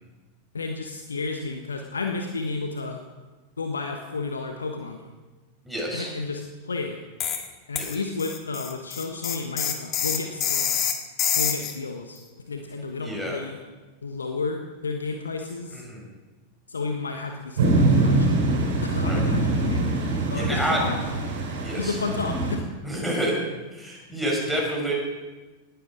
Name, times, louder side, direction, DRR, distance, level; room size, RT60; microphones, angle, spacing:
voice 1, 0.5-3.0 3.6-5.1 5.9-7.0 7.7-10.9 11.3-12.2 12.5-13.6 14.0-15.8 16.7-18.4 18.8-19.9 20.3-21.0 21.8-22.7, left 3 dB, 75° left, 4 dB, 1.3 m, -32 dB
voice 2, 5.6-6.1 7.7-8.0 13.0-13.4 15.7-16.0 19.0-19.2 20.3-20.8 21.6-21.9 22.8-23.4 23.7-24.9, right 1 dB, ahead, -3 dB, 6.5 m, -28 dB
sound 1, 7.2-7.5 7.8-11.8, left 8 dB, 30° left, 1.8 m, -26 dB
sound 2, 17.6-22.5, right 2 dB, 60° right, 5.0 m, -23 dB
19.0 x 13.0 x 5.0 m, 1.2 s
figure-of-eight pair, 90°, 0 cm